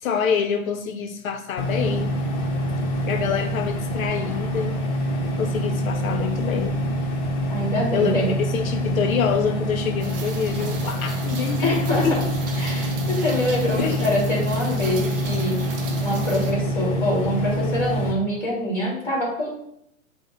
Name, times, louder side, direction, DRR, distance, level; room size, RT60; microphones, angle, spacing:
voice 1, 0.0-2.1 3.1-4.8 5.4-6.8 7.9-8.1 8.5-11.8 12.0-12.2 13.8-14.0, left 7 dB, 70° left, 6 dB, 0.5 m, -26 dB
sound 1, 1.6-18.1, equal, 35° left, 0.7 m, -26 dB
voice 2, 7.5-8.3 11.6-12.2 12.6-15.6 16.0-19.5, left 1 dB, 5° left, -4 dB, 1.3 m, -25 dB
Rain, 10.0-16.5, right 5 dB, 40° right, 0.6 m, -38 dB
6.2 x 2.1 x 3.0 m, 0.75 s
hypercardioid pair, 145°, 42 cm